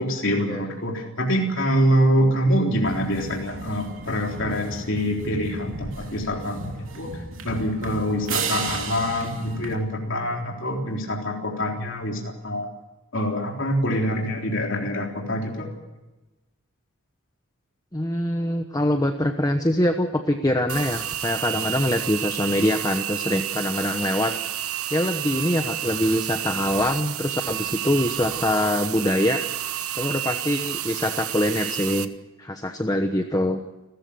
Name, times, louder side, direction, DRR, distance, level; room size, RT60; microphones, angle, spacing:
voice 1, 0.0-7.1 7.4-12.7 13.1-15.7, equal, 60° left, 0 dB, 3.8 m, -25 dB
sound 1, 2.8-9.7, right 4 dB, 60° right, 3.3 m, -34 dB
voice 2, 17.9-24.4 24.9-29.4 30.0-32.1 32.4-33.6, left 1 dB, 15° left, 6 dB, 1.1 m, -24 dB
sound 2, 20.7-32.1, right 12 dB, 80° right, 1.2 m, -30 dB
30.0 x 14.0 x 7.0 m, 1.1 s
head